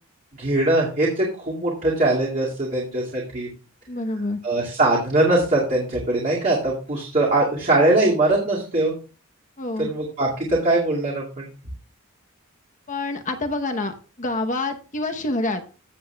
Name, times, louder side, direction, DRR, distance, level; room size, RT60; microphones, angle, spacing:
voice 1, 0.4-3.5 4.4-8.9 9.8-11.5, right 2 dB, 35° right, -5 dB, 2.2 m, -21 dB
voice 2, 3.9-4.4 9.6-9.9 12.9-15.6, left 2 dB, 35° left, 5 dB, 0.9 m, -27 dB
15.5 x 7.7 x 2.3 m, 0.36 s
head